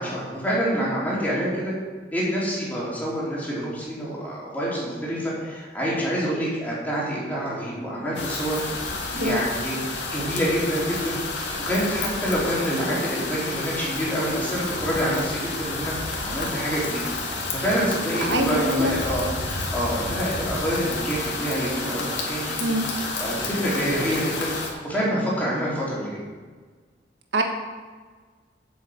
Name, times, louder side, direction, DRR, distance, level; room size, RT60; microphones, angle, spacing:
voice 1, 0.0-1.7 2.1-8.6 9.1-17.0 17.5-26.2, equal, 10° left, -7 dB, 3.9 m, -27 dB
sound 1, 8.1-24.7, left 3 dB, 85° left, 2.2 m, -30 dB
voice 2, 18.2-18.9 22.6-22.9 27.3-27.4, right 1 dB, 85° right, 2 dB, 1.6 m, -24 dB
8.5 x 7.6 x 7.9 m, 1.5 s
head